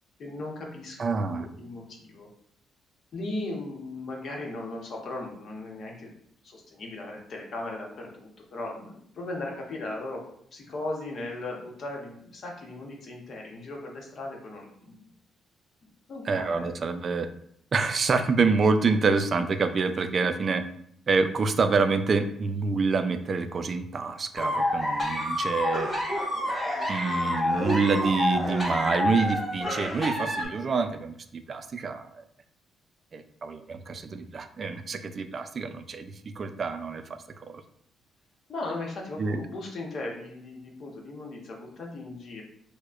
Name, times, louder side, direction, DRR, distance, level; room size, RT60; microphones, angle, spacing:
voice 1, 0.2-2.3 3.1-6.1 6.4-10.3 10.5-15.0 16.1-16.7 38.5-42.4, left 2 dB, 55° left, 0 dB, 0.9 m, -37 dB
voice 2, 1.0-1.5 16.3-17.3 17.7-20.6 21.1-25.9 26.9-32.2 33.1-37.6 39.2-39.4, right 4 dB, 45° right, 9 dB, 0.3 m, -27 dB
sound 1, 24.4-30.4, left 1 dB, 20° left, 1.2 m, -28 dB
4.6 x 2.1 x 2.4 m, 0.67 s
cardioid pair, 90°, 0 cm